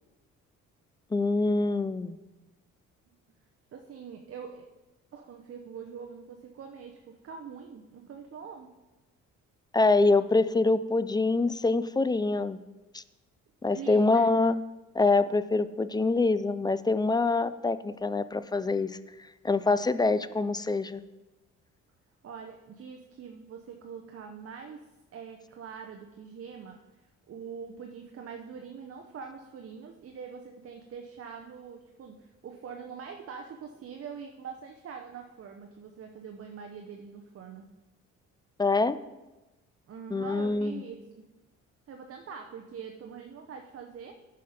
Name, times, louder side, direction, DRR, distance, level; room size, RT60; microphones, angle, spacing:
voice 1, 1.1-2.2 9.7-12.6 12.9-13.0 13.6-14.6 14.9-18.9 19.4-21.0 38.6-39.0 40.1-40.8, left 3 dB, 15° left, 14 dB, 0.3 m, -25 dB
voice 2, 3.7-4.7 5.1-8.7 13.7-14.3 22.2-37.7 39.9-41.3 41.9-44.2, right 6 dB, 50° right, 4 dB, 0.8 m, -44 dB
10.0 x 5.7 x 5.0 m, 1.1 s
cardioid pair, 90°, 30 cm